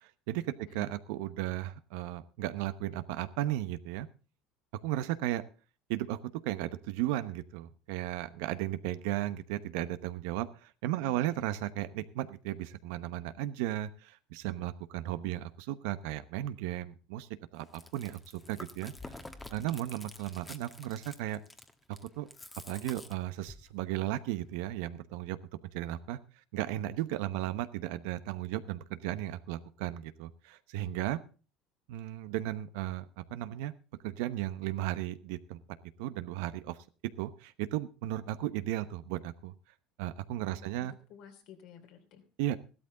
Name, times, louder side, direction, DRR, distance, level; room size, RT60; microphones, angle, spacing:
voice 1, 0.0-4.1 4.8-5.4 5.9-6.2 6.4-18.9 19.5-21.4 22.2-22.3 22.7-25.4 25.7-26.2 26.5-31.2 31.9-33.7 34.0-35.6 36.0-36.8 37.2-39.5 40.0-40.9 42.4-42.6, right 14 dB, 75° right, 13 dB, 0.9 m, -35 dB
voice 2, 11.0-11.4 27.4-27.5 40.4-42.2, left 8 dB, 65° left, 6 dB, 3.0 m, -53 dB
Chewing mastication, 17.6-23.7, left 2 dB, 15° left, 1.3 m, -49 dB
14.5 x 12.5 x 3.8 m, 0.34 s
supercardioid pair, 95°, 0 cm